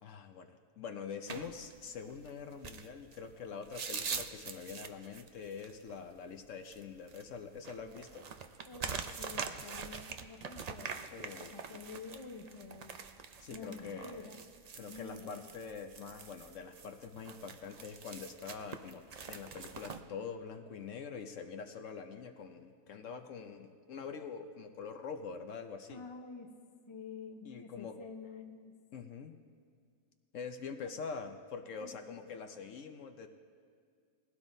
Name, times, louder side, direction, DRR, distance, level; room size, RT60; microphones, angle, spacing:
voice 1, 0.0-8.3 11.1-11.8 13.4-14.3 14.8-26.0 27.4-28.0 28.9-29.4 30.3-33.3, left 6 dB, 65° left, 6 dB, 1.0 m, -45 dB
sound 1, 1.3-20.0, right 5 dB, 60° right, 0.4 m, -45 dB
voice 2, 8.7-11.0 11.4-13.0 13.5-14.4 14.9-15.5 25.9-26.5 26.9-28.7 31.8-32.3, left 4 dB, 25° left, 3 dB, 0.8 m, -49 dB
21.0 x 16.0 x 2.7 m, 2.1 s
omnidirectional pair, 1.5 m